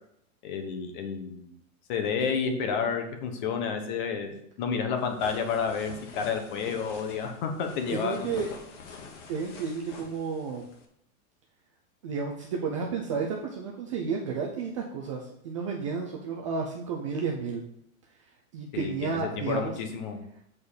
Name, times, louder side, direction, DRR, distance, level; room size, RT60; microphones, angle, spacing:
voice 1, 0.4-1.5 1.9-4.3 4.6-8.4 18.7-20.2, left 6 dB, 35° left, 5 dB, 1.2 m, -30 dB
sound 1, 5.0-10.9, left 4 dB, 55° left, 1.6 m, -46 dB
voice 2, 7.9-8.5 9.3-10.7 12.0-17.6 18.5-19.7, right 5 dB, 25° right, 0 dB, 0.4 m, -32 dB
7.5 x 4.0 x 6.7 m, 0.71 s
supercardioid pair, 165°, 43 cm